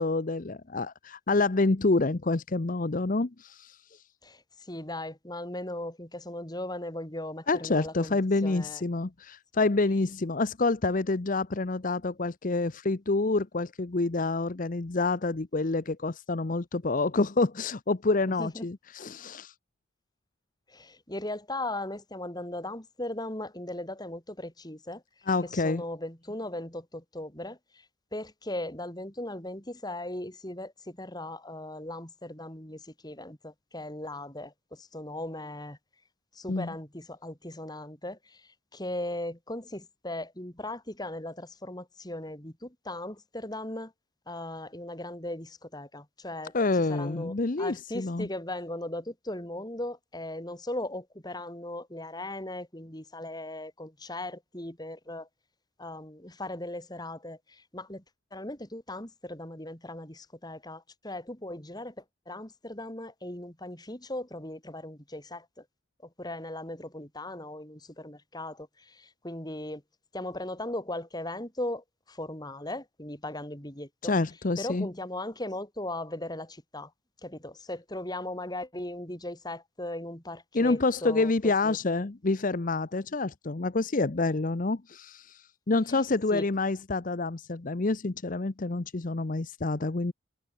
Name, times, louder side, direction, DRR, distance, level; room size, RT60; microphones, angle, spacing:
voice 1, 0.0-4.0 7.5-19.5 25.3-25.8 36.5-36.7 46.5-48.3 74.0-74.9 80.5-90.1, left 3 dB, 40° left, 0.7 m, -28 dB
voice 2, 4.2-8.8 18.3-18.7 20.7-25.0 25.4-27.9 28.1-35.8 36.3-43.9 44.3-55.3 55.8-58.0 58.3-65.6 66.2-69.8 70.1-74.1 74.6-76.9 77.2-81.8 86.3-86.4, left 1 dB, 20° left, 3.5 m, -38 dB
head